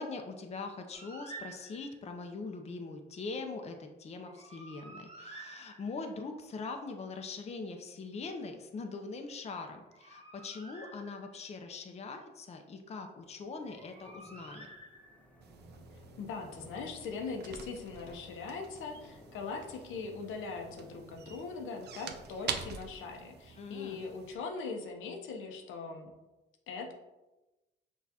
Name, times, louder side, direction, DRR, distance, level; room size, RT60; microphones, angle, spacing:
voice 1, 0.0-14.7 23.6-24.1, left 3 dB, 35° left, 5 dB, 0.5 m, -42 dB
Bird, 0.9-2.1 4.2-6.2 9.7-11.5 13.5-15.4, right 2 dB, 30° right, 1.0 m, -51 dB
sound 1, 13.2-22.4, equal, 5° left, 0.9 m, -57 dB
sound 2, 15.4-24.4, right 7 dB, 55° right, 0.5 m, -46 dB
voice 2, 16.2-26.1 26.7-26.9, left 4 dB, 85° left, 2 dB, 0.7 m, -41 dB
5.9 x 2.4 x 2.8 m, 1.0 s
cardioid pair, 90°, 20 cm